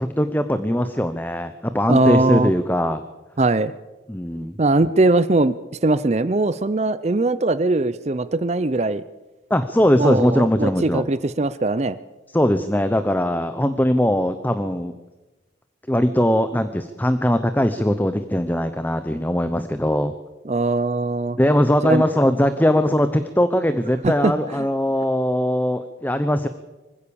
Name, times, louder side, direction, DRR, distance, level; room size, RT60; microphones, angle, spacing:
voice 1, 0.0-3.0 4.1-4.5 9.5-11.1 12.3-14.9 15.9-20.1 21.4-26.5, equal, 10° left, 10 dB, 0.8 m, -20 dB
voice 2, 1.9-2.5 3.4-3.7 4.6-5.5 5.8-9.0 10.0-12.0 20.5-21.4 21.8-22.0 24.0-24.3, right 2 dB, 35° right, 15 dB, 0.6 m, -20 dB
25.0 x 15.5 x 7.0 m, 1.1 s
head